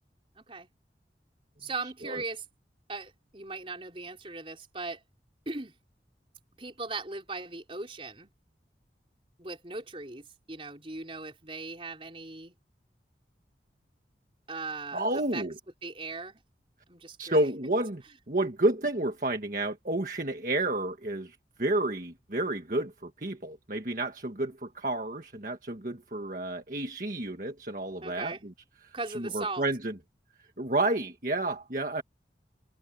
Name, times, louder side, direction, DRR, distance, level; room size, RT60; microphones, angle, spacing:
voice 1, 0.3-0.7 1.6-2.4 2.9-5.0 5.5-5.7 6.6-8.3 9.4-12.5 14.5-15.4 15.8-16.4 16.9-17.4 28.0-28.5 28.9-29.6, right 3 dB, 30° right, 4.6 m, -38 dB
voice 2, 1.8-2.2 14.9-15.5 17.2-28.5 28.8-29.9 30.6-32.0, right 2 dB, 50° right, 1.6 m, -30 dB
head